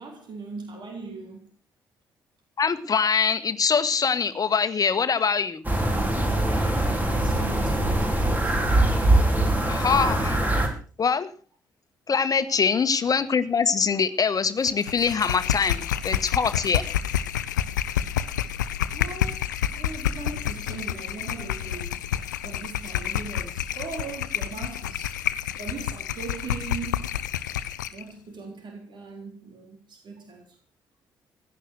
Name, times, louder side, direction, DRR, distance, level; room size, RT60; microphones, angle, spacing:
voice 1, 0.0-1.5 6.8-8.6 10.5-10.8 12.4-12.6 17.0-17.1 18.1-18.2 18.9-19.5 19.7-22.0 22.4-25.2 25.6-27.1 27.9-30.6, right 4 dB, 50° right, 3.6 m, -39 dB
voice 2, 2.6-5.6 9.7-10.4 11.0-11.3 12.1-16.8, left 6 dB, 40° left, 1.5 m, -23 dB
sound 1, 5.6-10.7, right 1 dB, 15° right, 4.9 m, -22 dB
sound 2, 14.6-28.0, left 10 dB, 80° left, 0.6 m, -29 dB
16.5 x 11.0 x 6.4 m
figure-of-eight pair, 40°, 10 cm